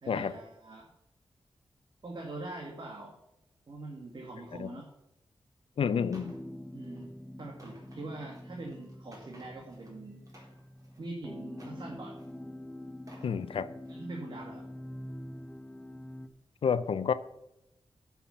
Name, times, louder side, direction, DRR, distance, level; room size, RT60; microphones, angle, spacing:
voice 1, 0.0-0.9 2.0-3.1 3.7-4.9 6.7-7.1 7.4-10.2 11.0-12.2 13.9-14.6, right 2 dB, 55° right, 0 dB, 1.8 m, -43 dB
voice 2, 5.8-6.4 13.2-13.7 16.6-17.1, left 7 dB, 90° left, 14 dB, 0.5 m, -29 dB
sound 1, 6.1-16.3, left 1 dB, 10° left, 0.7 m, -45 dB
sound 2, 6.1-6.4 6.8-7.0 7.4-9.9 10.2-11.0 11.5-12.4 12.9-13.3 13.8-14.0, right 1 dB, 40° right, 3.5 m, -57 dB
11.0 x 5.8 x 5.8 m, 0.87 s
wide cardioid pair, 90°, 9 cm